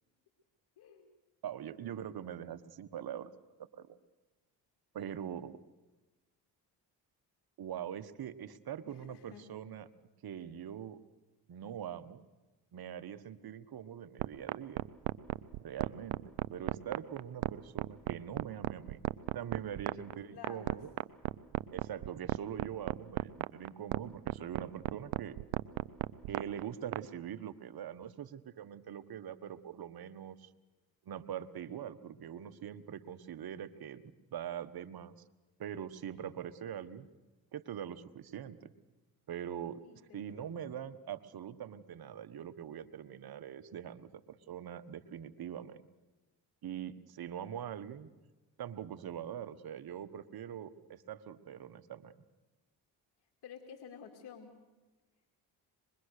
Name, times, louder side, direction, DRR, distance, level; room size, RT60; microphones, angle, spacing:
voice 1, 0.8-1.1 8.8-9.6 19.9-20.1 20.3-20.8 39.8-40.7 53.4-54.5, left 7 dB, 60° left, 1 dB, 2.6 m, -52 dB
voice 2, 1.4-3.3 3.7-4.0 4.9-5.6 7.6-9.9 10.2-11.0 11.5-12.2 12.7-14.8 15.6-16.2 16.5-19.0 19.3-20.9 21.7-25.4 26.3-30.5 31.0-34.0 34.3-35.1 35.6-37.1 37.5-38.7 39.3-39.8 40.1-45.8 46.6-48.1 48.6-52.1, right 9 dB, 55° right, 11 dB, 1.3 m, -43 dB
sound 1, 14.2-27.0, right 19 dB, 75° right, 0.7 m, -34 dB
24.0 x 22.0 x 6.6 m, 1.2 s
supercardioid pair, 60°, 44 cm